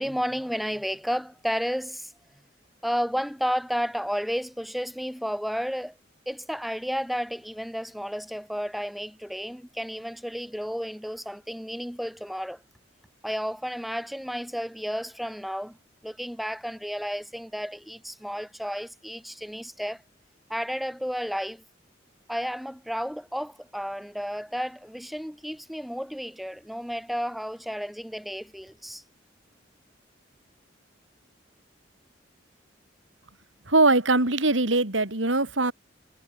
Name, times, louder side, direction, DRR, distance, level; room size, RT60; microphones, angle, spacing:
voice 1, 0.0-2.1 2.8-5.9 6.3-12.6 13.2-15.8 16.0-20.0 20.5-21.6 22.3-29.0, equal, ahead, 3.4 m, -32 dB
voice 2, 33.7-35.7, right 2 dB, 80° right, 3.8 m, -21 dB
head